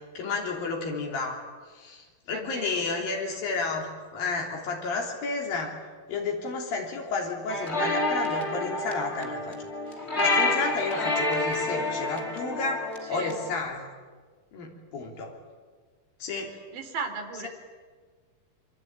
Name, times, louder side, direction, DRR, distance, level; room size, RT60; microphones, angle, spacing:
voice 1, 0.1-1.4 1.7-3.9 4.1-5.7 6.1-9.6 10.2-12.8 13.1-13.9 14.5-15.3 16.2-16.5, left 4 dB, 90° left, 0 dB, 5.1 m, -31 dB
voice 2, 2.3-3.4 13.0-13.4 16.7-17.5, right 4 dB, 75° right, 6 dB, 4.6 m, -37 dB
sound 1, 7.5-13.5, left 2 dB, 20° left, 2.3 m, -28 dB
26.5 x 24.5 x 8.9 m, 1.5 s
omnidirectional pair, 4.0 m